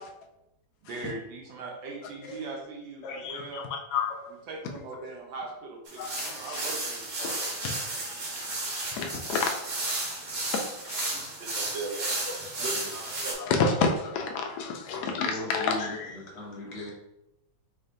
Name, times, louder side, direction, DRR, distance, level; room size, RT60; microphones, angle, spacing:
voice 1, 0.8-3.7 4.5-7.5 11.1-11.9 12.6-13.8 14.3-14.5, right 3 dB, 70° right, 1.5 m, -40 dB
voice 2, 3.0-4.3 6.0-6.6 7.2-8.0 8.9-9.5 9.8-10.2 10.5-11.2 12.4-12.5 13.5-16.1, left 4 dB, 80° left, 0.9 m, -31 dB
sound 1, 5.9-13.3, right 2 dB, 50° right, 1.3 m, -33 dB
voice 3, 12.5-12.9 14.9-16.9, left 1 dB, 40° left, 1.1 m, -40 dB
4.4 x 3.3 x 2.6 m
omnidirectional pair, 2.3 m